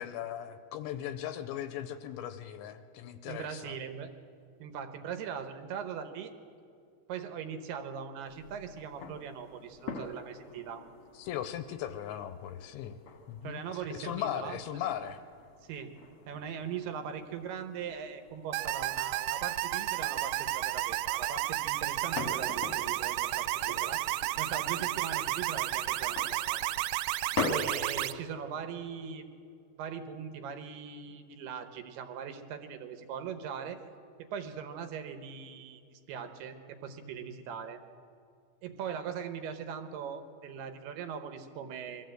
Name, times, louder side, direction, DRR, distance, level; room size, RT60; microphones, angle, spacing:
voice 1, 0.0-3.8 11.1-13.0 13.3-15.2, left 10 dB, 80° left, 10 dB, 2.8 m, -38 dB
voice 2, 3.3-4.1 4.6-6.3 7.1-10.9 13.4-14.9 15.7-15.9 16.3-24.0 24.4-26.6 27.5-29.3 29.8-33.8 34.2-37.8 38.6-42.1, right 7 dB, 70° right, 7 dB, 2.7 m, -40 dB
sound 1, 8.3-27.6, left 4 dB, 60° left, 1.7 m, -44 dB
sound 2, 18.5-28.1, right 16 dB, 85° right, 3.1 m, -32 dB
23.5 x 15.0 x 7.8 m, 2.4 s
omnidirectional pair, 5.4 m